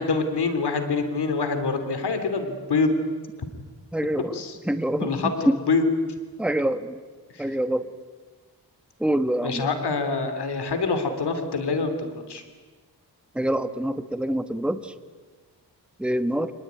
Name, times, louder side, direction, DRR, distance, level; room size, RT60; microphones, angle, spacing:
voice 1, 0.0-2.9 4.3-4.6 5.0-5.9 7.3-7.6 9.4-12.4, left 4 dB, 80° left, 8 dB, 3.2 m, -25 dB
voice 2, 3.9-4.3 4.7-5.6 6.4-7.0 7.4-7.9 9.0-9.7 13.3-14.9 16.0-16.5, right 1 dB, 5° right, 10 dB, 1.2 m, -25 dB
25.0 x 20.0 x 9.5 m, 1.4 s
wide cardioid pair, 85°, 39 cm